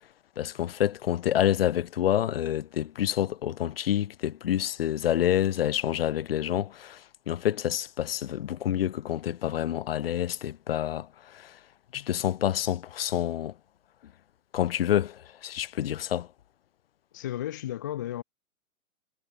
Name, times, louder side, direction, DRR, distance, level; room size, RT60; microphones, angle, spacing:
voice 1, 0.4-11.1 11.3-11.6 11.9-13.5 14.5-16.3, left 11 dB, 40° left, 2.4 m, -28 dB
voice 2, 17.1-18.2, left 12 dB, 15° left, 0.7 m, -33 dB
hypercardioid pair, 180°, 43 cm